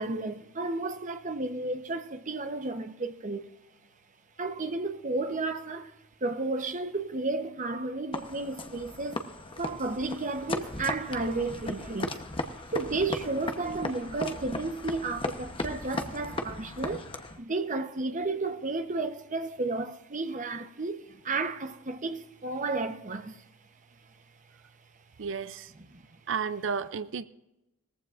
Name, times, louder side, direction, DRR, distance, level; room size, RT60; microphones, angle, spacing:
voice 1, 0.0-3.5 4.4-5.9 6.2-9.2 9.6-12.2 12.7-17.1 17.4-23.5 25.9-26.1, right 3 dB, 35° right, 0.9 m, -32 dB
sound 1, 8.1-17.4, left 2 dB, 25° left, 0.9 m, -37 dB
voice 2, 25.2-25.7 26.3-27.2, right 6 dB, 60° right, 0.5 m, -32 dB
20.0 x 14.5 x 2.5 m
head